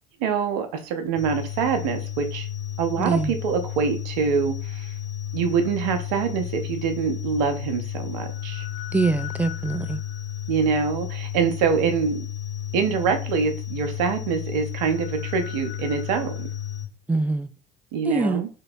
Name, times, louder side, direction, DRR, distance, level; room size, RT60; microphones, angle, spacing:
voice 1, 0.2-2.5 2.8-4.9 5.3-8.7 10.5-12.2 12.7-16.5 17.9-18.5, right 6 dB, 70° right, 0.6 m, -25 dB
sound 1, 1.2-16.8, left 10 dB, 65° left, 1.6 m, -33 dB
voice 2, 3.0-3.3 8.9-10.0 17.1-17.5 18.1-18.5, right 3 dB, 5° right, 0.3 m, -24 dB
2.9 x 2.9 x 2.7 m
hypercardioid pair, 60°, 21 cm